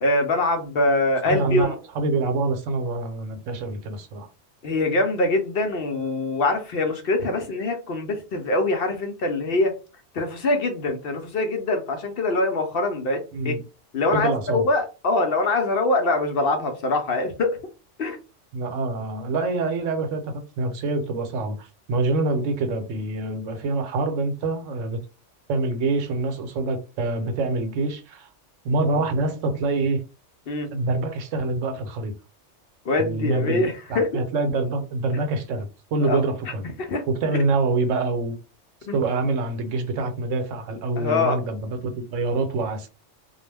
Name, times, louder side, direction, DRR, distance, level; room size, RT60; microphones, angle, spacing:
voice 1, 0.0-1.7 4.6-9.7 10.1-13.6 13.9-17.6 18.0-18.2 30.5-30.7 32.9-34.1 36.0-36.2 36.8-37.0 38.9-39.0 41.0-41.4, left 2 dB, 60° left, 0.7 m, -23 dB
voice 2, 1.2-4.3 13.3-13.6 14.1-14.7 18.5-25.0 25.5-28.3 28.6-30.0 30.7-32.1 33.0-36.6 37.1-38.4 38.9-42.9, right 3 dB, 85° right, 1.0 m, -26 dB
2.3 x 2.1 x 3.2 m
omnidirectional pair, 1.3 m